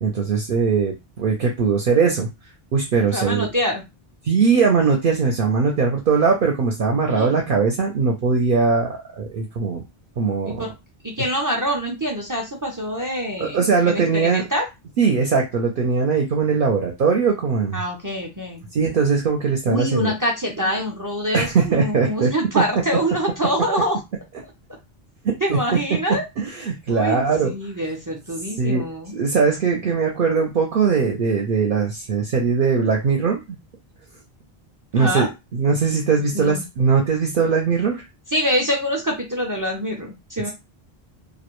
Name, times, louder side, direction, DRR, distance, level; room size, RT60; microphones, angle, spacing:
voice 1, 0.0-2.3 2.7-3.5 4.2-9.8 10.2-10.6 13.4-14.4 15.0-17.8 18.7-20.1 21.3-22.3 25.2-25.6 26.1-27.5 28.6-28.8 29.1-33.6 34.9-35.3 35.5-38.0, right 5 dB, 60° right, 1 dB, 0.7 m, -20 dB
voice 2, 3.0-3.8 7.1-7.4 10.4-10.7 11.0-14.7 17.7-18.7 19.7-24.0 25.4-26.2 26.9-29.1 34.9-35.3 36.3-36.7 38.3-40.5, equal, 30° right, 0 dB, 0.3 m, -25 dB
2.4 x 2.1 x 2.9 m, 0.24 s
omnidirectional pair, 1.0 m